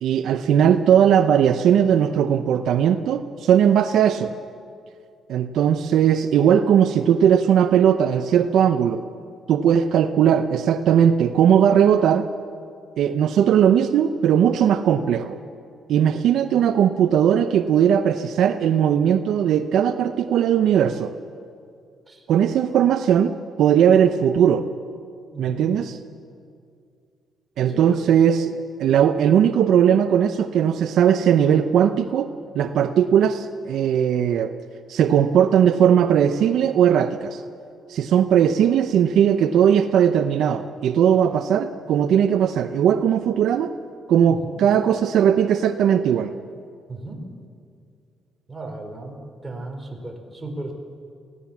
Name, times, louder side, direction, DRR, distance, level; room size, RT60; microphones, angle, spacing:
voice 1, 0.0-4.3 5.3-9.0 9.5-12.3 13.0-15.4 15.9-21.1 22.3-24.6 25.4-25.9 27.6-32.3 32.5-34.5 34.9-37.4 37.9-43.7 44.1-46.3, right 9 dB, 75° right, 9 dB, 0.7 m, -18 dB
voice 2, 22.1-22.6 25.3-25.7 27.7-28.0 44.3-44.6 46.9-47.2 48.5-50.7, right 2 dB, 15° right, 2 dB, 4.5 m, -36 dB
22.5 x 16.5 x 7.2 m, 2.3 s
cardioid pair, 90°, 0 cm